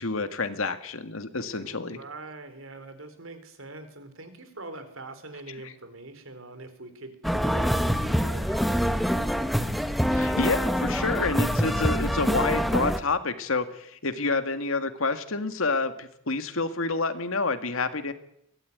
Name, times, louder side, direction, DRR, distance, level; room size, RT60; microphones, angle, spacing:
voice 1, 0.0-2.0 5.6-5.7 10.1-18.1, left 3 dB, 75° left, 9 dB, 2.0 m, -28 dB
voice 2, 1.6-9.0, right 2 dB, 70° right, 10 dB, 3.8 m, -43 dB
sound 1, 7.2-13.0, equal, ahead, 1.2 m, -25 dB
22.5 x 17.0 x 9.5 m, 0.77 s
head